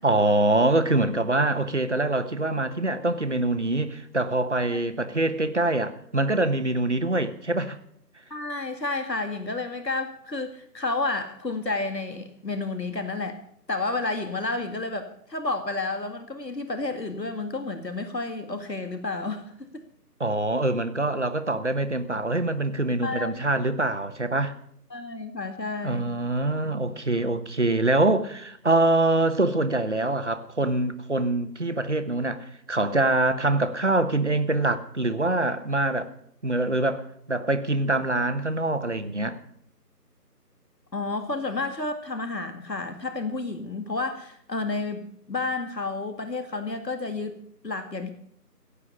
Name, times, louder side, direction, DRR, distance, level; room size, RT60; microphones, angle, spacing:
voice 1, 0.0-7.8 20.2-24.5 25.8-36.1 36.4-39.4, right 2 dB, 45° right, 1.1 m, -24 dB
voice 2, 8.3-13.4 13.7-19.8 23.0-23.5 24.9-26.1 40.9-47.4 47.6-48.1, left 3 dB, 80° left, 2.2 m, -31 dB
16.5 x 8.4 x 8.4 m
figure-of-eight pair, 175°, 49 cm